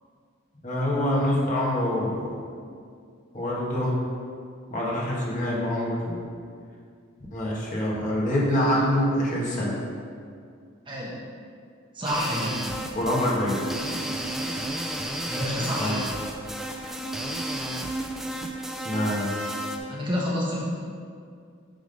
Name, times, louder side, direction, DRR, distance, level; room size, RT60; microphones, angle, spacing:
voice 1, 0.6-2.3 3.3-3.9 4.7-6.3 7.3-9.8 12.9-13.6 15.8-16.0 18.8-19.5, left 1 dB, 40° left, -6 dB, 1.8 m, -25 dB
voice 2, 11.9-12.6 15.2-16.1 19.9-20.6, equal, 25° right, -6 dB, 1.3 m, -28 dB
sound 1, 12.0-19.8, right 1 dB, ahead, 0.4 m, -32 dB
9.1 x 3.8 x 5.3 m, 2.2 s
head